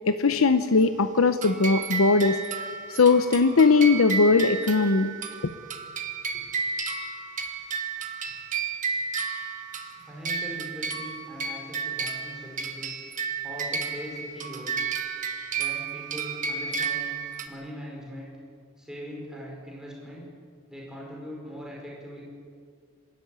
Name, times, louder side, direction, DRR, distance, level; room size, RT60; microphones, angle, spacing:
voice 1, 0.0-5.2 5.4-5.5, left 4 dB, 80° left, 10 dB, 0.8 m, -20 dB
sound 1, 1.4-17.5, right 5 dB, 35° right, 1.6 m, -32 dB
voice 2, 10.0-13.0 13.4-14.8 15.5-17.1 17.4-18.3 18.8-20.2 20.7-22.2, equal, 5° right, -4 dB, 5.5 m, -41 dB
26.5 x 13.5 x 9.5 m, 2.1 s
head